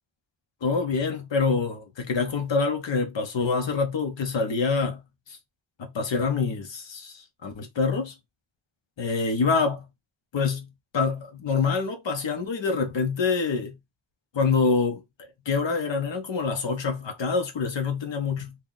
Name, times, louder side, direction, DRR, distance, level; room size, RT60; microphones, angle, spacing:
voice 1, 0.6-5.4 5.8-8.1 9.0-9.9 10.3-10.7 10.9-13.8 14.3-18.6, left 4 dB, 85° left, 0.9 m, -26 dB
2.9 x 2.4 x 3.8 m
wide cardioid pair, 105°, 43 cm